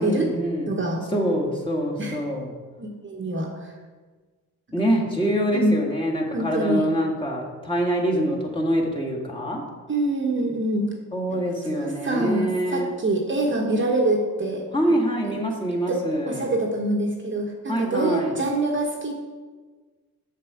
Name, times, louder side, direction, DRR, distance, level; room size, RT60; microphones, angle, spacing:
voice 1, 0.0-0.7 1.1-2.5 4.7-9.6 11.1-12.9 14.7-16.5 17.7-18.3, equal, 15° left, -2 dB, 1.9 m, -25 dB
voice 2, 0.7-1.0 2.0-2.2 2.8-3.7 5.5-5.8 6.3-6.8 9.9-10.9 11.3-11.4 11.7-14.6 15.3-15.4 15.9-16.0 16.3-19.1, right 2 dB, 30° right, 1 dB, 1.2 m, -25 dB
6.6 x 6.6 x 4.9 m, 1.4 s
cardioid pair, 75°, 37 cm